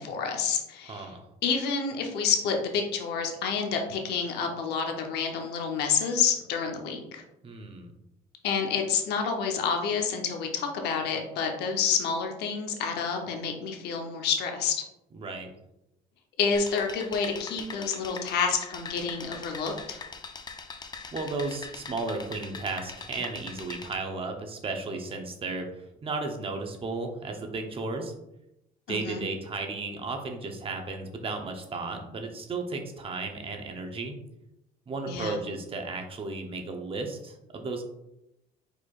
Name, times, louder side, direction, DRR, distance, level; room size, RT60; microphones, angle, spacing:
voice 1, 0.0-1.1 1.4-7.2 8.4-14.8 16.4-20.0 28.9-29.2 35.1-35.4, left 6 dB, 80° left, 3 dB, 0.8 m, -29 dB
voice 2, 0.8-1.2 7.4-7.9 15.1-15.5 21.1-28.1 28.9-34.2 34.9-37.8, right 3 dB, 35° right, 4 dB, 0.8 m, -34 dB
sound 1, 16.5-23.9, left 5 dB, 25° left, 0.5 m, -42 dB
4.9 x 4.3 x 2.4 m, 0.87 s
cardioid pair, 110°, 17 cm